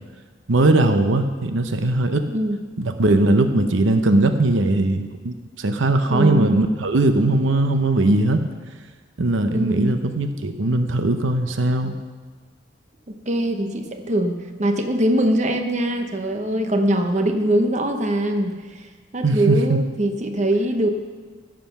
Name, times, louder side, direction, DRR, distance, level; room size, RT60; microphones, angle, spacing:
voice 1, 0.5-2.2 2.8-8.4 9.2-12.0 19.2-19.8, right 2 dB, 80° right, 7 dB, 0.8 m, -19 dB
voice 2, 6.1-6.6 9.5-10.0 13.1-18.9 19.1-20.9, right 1 dB, 35° right, 5 dB, 1.0 m, -22 dB
15.5 x 7.6 x 5.9 m, 1.4 s
head